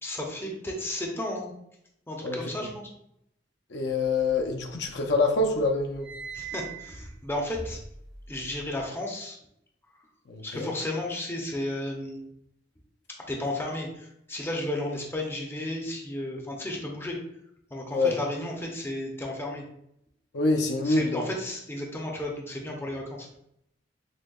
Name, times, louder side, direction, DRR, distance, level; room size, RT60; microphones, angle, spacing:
voice 1, 0.0-1.5 2.1-2.9 6.3-7.8 8.3-9.4 10.4-12.3 13.3-17.2 17.7-19.6 20.8-23.3, left 1 dB, 15° left, 0 dB, 0.6 m, -33 dB
voice 2, 2.2-2.7 3.7-6.1 10.3-10.7 17.9-18.1 20.3-21.3, left 3 dB, 65° left, 2 dB, 0.5 m, -26 dB
sound 1, 4.0-5.1 5.4-8.8, right 7 dB, 60° right, 0.8 m, -43 dB
6.2 x 2.2 x 2.3 m, 0.76 s
head